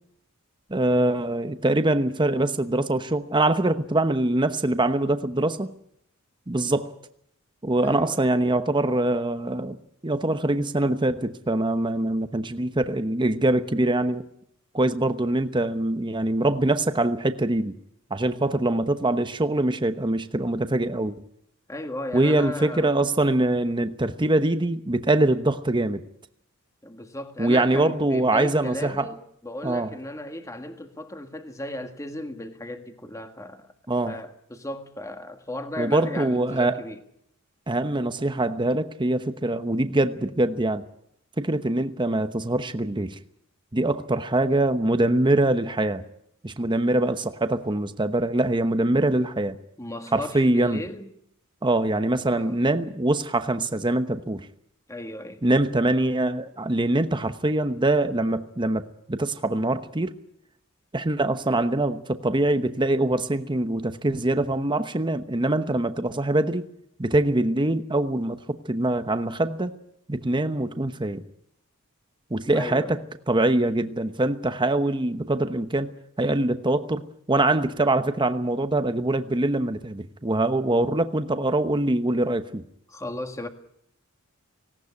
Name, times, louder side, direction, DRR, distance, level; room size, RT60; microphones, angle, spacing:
voice 1, 0.7-5.8 6.5-6.9 7.6-9.8 10.0-14.3 14.7-17.8 18.1-21.2 22.1-26.0 27.4-29.1 29.6-30.0 33.9-34.2 35.8-36.8 37.7-40.9 41.4-43.2 43.7-46.0 46.4-49.6 50.1-50.8 51.6-54.5 55.4-60.1 60.9-66.7 67.0-69.7 70.1-71.2 72.3-73.0 73.3-75.9 76.2-77.0 77.3-82.6, right 2 dB, 20° right, 1.0 m, -23 dB
voice 2, 7.8-8.2 21.7-22.9 26.8-33.7 34.1-37.0 49.8-51.1 52.3-52.6 54.9-55.4 72.5-73.0 82.9-83.5, left 1 dB, 15° left, 1.7 m, -35 dB
18.5 x 17.5 x 9.7 m
head